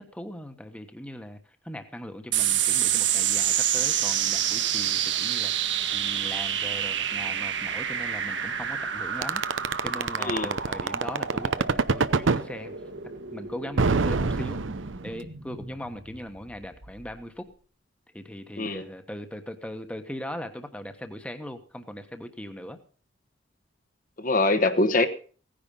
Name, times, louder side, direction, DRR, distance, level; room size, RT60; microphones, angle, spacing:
voice 1, 0.0-1.4 1.6-9.4 9.8-12.8 13.3-14.6 15.0-17.5 18.1-22.8, equal, 5° left, 7 dB, 1.2 m, -39 dB
sound 1, 2.3-17.1, right 9 dB, 65° right, 1.5 m, -29 dB
sound 2, 9.2-12.4 13.8-15.2, right 4 dB, 85° right, 0.7 m, -24 dB
voice 2, 24.2-25.1, left 2 dB, 45° left, 8 dB, 1.2 m, -23 dB
17.0 x 10.0 x 5.5 m, 0.41 s
head